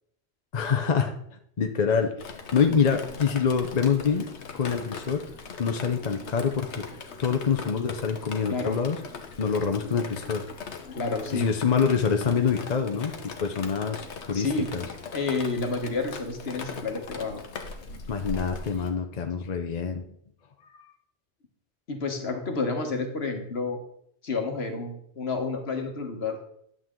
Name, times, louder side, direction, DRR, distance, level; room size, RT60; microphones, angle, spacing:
voice 1, 0.5-1.1 1.6-4.3 4.5-5.3 5.6-6.8 7.2-9.0 9.4-10.4 11.3-14.5 14.7-14.8 18.1-20.0 20.7-20.8, left 6 dB, 45° left, 5 dB, 0.8 m, -26 dB
Drip, 2.2-18.9, left 5 dB, 85° left, 1.3 m, -40 dB
voice 2, 10.8-11.5 14.3-14.7 15.1-17.4 19.3-19.4 21.9-23.8 24.2-26.4, left 3 dB, 70° left, 4 dB, 1.6 m, -30 dB
10.5 x 7.6 x 3.7 m, 0.71 s
omnidirectional pair, 1.1 m